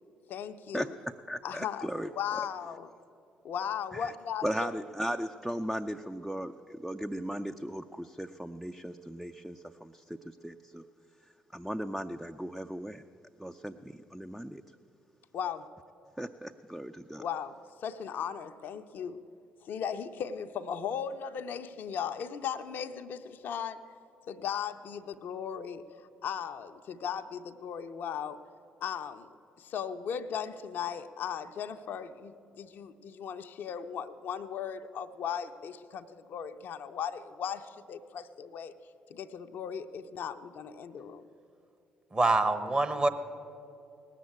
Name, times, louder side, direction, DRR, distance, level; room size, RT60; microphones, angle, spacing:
voice 1, 0.3-0.9 1.4-2.9 3.4-4.7 15.3-15.7 17.2-19.2 19.6-23.8 24.3-25.8 26.2-28.4 28.8-38.7 39.1-41.2, left 8 dB, 55° left, 0.5 m, -37 dB
voice 2, 1.3-2.5 3.9-4.1 4.4-10.9 11.5-13.0 13.4-14.6 16.2-17.2, equal, 5° right, 0.4 m, -37 dB
voice 3, 42.1-43.1, right 2 dB, 25° right, 1.1 m, -25 dB
18.5 x 7.4 x 8.5 m
figure-of-eight pair, 45°, 4 cm